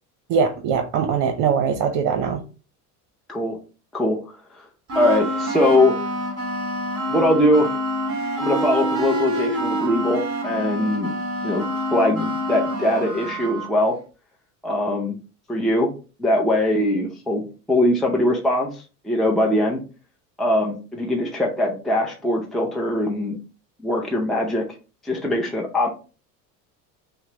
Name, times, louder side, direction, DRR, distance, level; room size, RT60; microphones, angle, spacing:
voice 1, 0.3-2.4, right 6 dB, 60° right, 6 dB, 0.7 m, -21 dB
voice 2, 4.9-5.9 7.1-7.7 8.4-11.2 11.4-11.7 11.9-14.0 14.6-15.2 15.5-15.9 16.2-17.4 17.7-19.8 20.4-23.4 23.8-24.6 25.0-25.9, left 1 dB, ahead, -1 dB, 0.6 m, -21 dB
sound 1, 4.9-13.7, equal, 30° right, 1.9 m, -27 dB
5.6 x 2.1 x 2.8 m, 0.35 s
hypercardioid pair, 85°, 45 cm